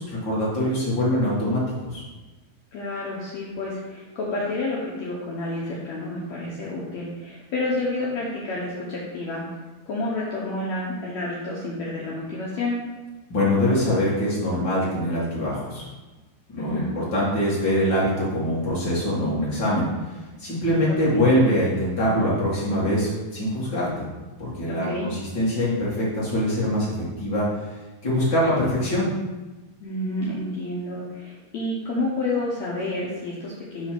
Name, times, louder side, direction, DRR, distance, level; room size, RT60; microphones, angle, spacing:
voice 1, 0.0-2.0 13.3-15.8 16.5-19.9 20.4-24.0 24.4-27.5 28.0-29.1, left 1 dB, 35° left, -7 dB, 1.9 m, -23 dB
voice 2, 2.7-9.4 9.9-12.8 16.6-16.9 21.1-21.2 24.4-25.1 29.8-33.9, left 2 dB, 85° left, -5 dB, 1.5 m, -29 dB
7.6 x 3.3 x 6.0 m, 1.2 s
omnidirectional pair, 4.6 m